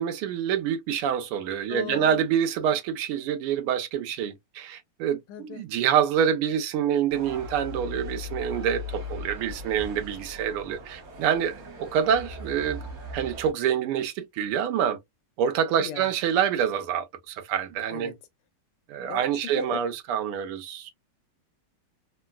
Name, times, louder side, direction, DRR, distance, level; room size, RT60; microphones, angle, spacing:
voice 1, 0.0-12.8 13.1-15.0 15.4-18.1 18.9-20.9, right 8 dB, 80° right, 1.6 m, -26 dB
voice 2, 1.7-2.2 5.3-5.7 15.8-16.1 17.9-18.2 19.1-19.8, left 10 dB, 80° left, 1.4 m, -37 dB
sound 1, 7.1-13.5, left 2 dB, 50° right, 1.2 m, -39 dB
3.8 x 2.1 x 2.2 m
omnidirectional pair, 2.4 m